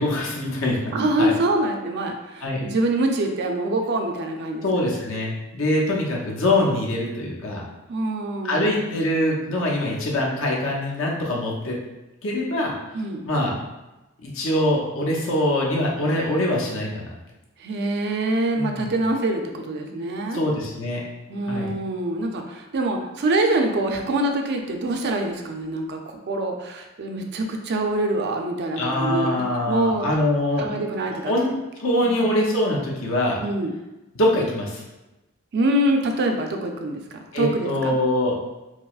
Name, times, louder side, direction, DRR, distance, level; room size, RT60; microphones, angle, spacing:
voice 1, 0.0-1.3 2.4-2.6 4.6-7.6 8.4-11.8 12.2-12.7 13.3-13.5 14.2-17.1 18.6-18.9 20.3-21.0 21.5-21.7 28.8-30.6 31.3-31.5 31.8-33.4 34.1-34.8 37.3-38.3, left 1 dB, 70° left, -3 dB, 0.8 m, -23 dB
voice 2, 0.9-4.9 7.9-8.7 12.9-13.2 17.6-20.4 21.3-30.1 30.6-31.3 32.0-32.3 33.4-33.7 35.5-38.0, right 1 dB, 55° right, 3 dB, 0.4 m, -25 dB
4.6 x 2.0 x 2.4 m, 1.0 s
head